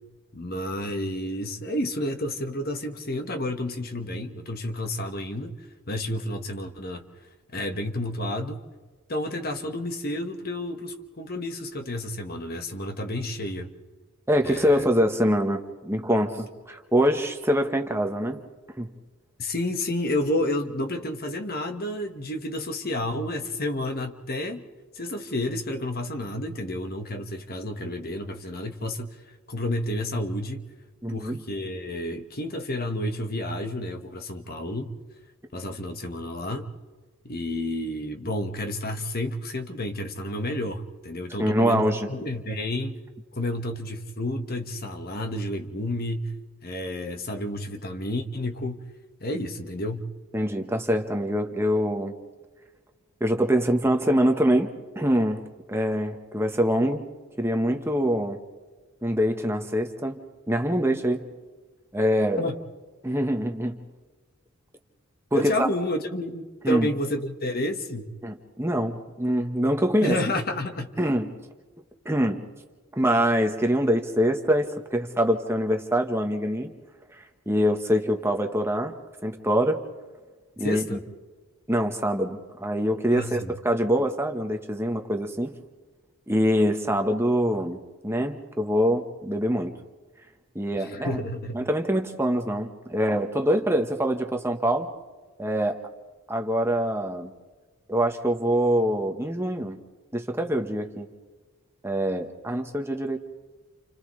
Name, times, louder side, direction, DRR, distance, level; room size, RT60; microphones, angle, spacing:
voice 1, 0.3-5.5 5.9-7.0 7.5-8.6 9.1-13.7 14.4-14.9 19.4-24.6 24.9-29.1 29.5-30.6 31.1-34.9 35.5-36.7 37.2-43.0 43.4-46.3 46.6-48.8 49.2-50.1 62.4-62.5 65.3-68.1 70.0-70.9 80.6-81.0 83.1-83.6 90.7-91.6, left 1 dB, 45° left, 5 dB, 1.5 m, -30 dB
voice 2, 14.3-18.4 18.8-18.9 31.0-31.4 41.4-42.1 50.3-52.2 53.2-54.7 54.9-57.0 57.4-58.4 59.0-60.2 60.5-61.3 61.9-62.4 63.0-63.8 65.3-65.7 66.6-66.9 68.2-70.2 71.0-71.3 72.0-72.4 73.0-76.7 77.1-78.9 79.2-79.8 80.6-80.9 81.7-85.5 86.3-87.8 88.0-89.7 90.5-91.2 91.5-94.9 95.4-95.8 96.3-97.3 97.9-99.8 100.1-101.1 101.8-103.2, equal, 10° right, 4 dB, 1.2 m, -24 dB
29.5 x 29.5 x 3.3 m, 1.3 s
head